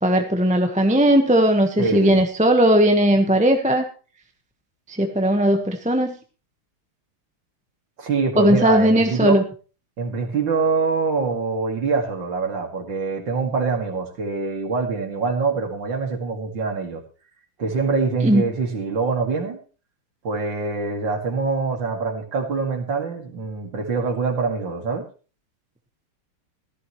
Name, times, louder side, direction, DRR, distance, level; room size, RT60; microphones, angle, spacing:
voice 1, 0.0-3.9 4.9-6.2 8.4-9.4 18.2-18.4, right 1 dB, 5° right, 4 dB, 0.8 m, -18 dB
voice 2, 1.8-2.2 8.0-9.4 10.0-17.0 17.6-19.6 20.2-25.0, right 4 dB, 60° right, 3 dB, 2.9 m, -24 dB
15.0 x 14.5 x 3.1 m, 0.35 s
omnidirectional pair, 2.3 m